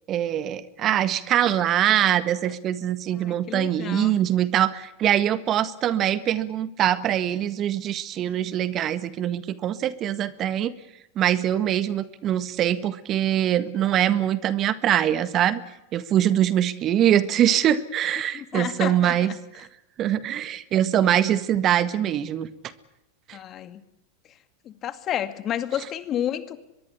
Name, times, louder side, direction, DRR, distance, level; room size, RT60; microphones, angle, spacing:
voice 1, 0.1-10.7 11.1-15.6 15.9-19.7 20.0-22.5 23.3-23.4, right 11 dB, 40° right, 14 dB, 1.6 m, -23 dB
voice 2, 3.1-4.1 18.3-19.4 23.3-23.8 24.6-26.6, left 10 dB, 35° left, 12 dB, 2.2 m, -31 dB
24.0 x 22.0 x 8.4 m, 0.87 s
hypercardioid pair, 95°, 0 cm